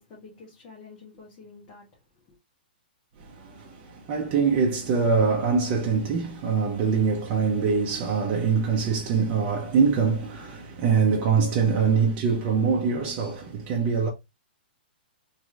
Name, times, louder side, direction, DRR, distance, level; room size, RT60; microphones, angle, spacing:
voice 1, 0.0-1.9 2.1-2.3, left 4 dB, 30° left, 1.2 m, -48 dB
voice 2, 3.2-14.1, right 5 dB, 35° right, 0.7 m, -24 dB
3.1 x 2.9 x 2.4 m
hypercardioid pair, 145°, 6 cm